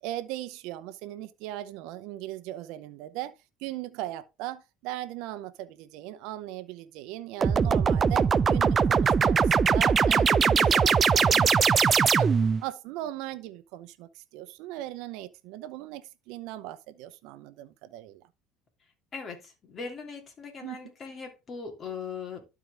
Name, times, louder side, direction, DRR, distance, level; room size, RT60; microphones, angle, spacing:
voice 1, 0.0-3.3 3.6-12.3 12.6-18.2 20.6-20.9, right 14 dB, 75° right, 0.8 m, -38 dB
cyber laser, 7.4-12.6, right 6 dB, 30° right, 0.4 m, -21 dB
voice 2, 19.1-22.5, left 5 dB, 35° left, 2.9 m, -39 dB
12.0 x 4.7 x 3.4 m
supercardioid pair, 100°, 0 cm